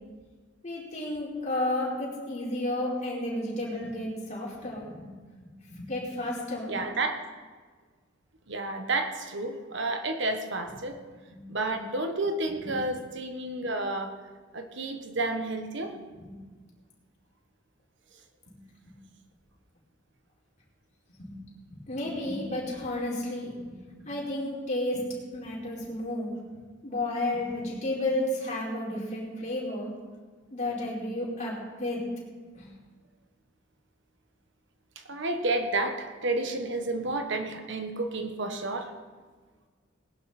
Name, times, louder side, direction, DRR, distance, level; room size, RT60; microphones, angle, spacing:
voice 1, 0.6-5.0 5.8-6.7 11.3-11.4 21.2-21.3 21.7-25.0 25.3-26.3 26.8-29.9 30.5-32.0 32.5-32.6, left 1 dB, 40° left, -5 dB, 4.7 m, -32 dB
voice 2, 6.7-7.2 8.5-11.0 11.5-14.1 14.5-16.0 35.1-38.9, right 2 dB, 65° right, 6 dB, 1.3 m, -30 dB
19.5 x 11.5 x 4.4 m, 1.5 s
head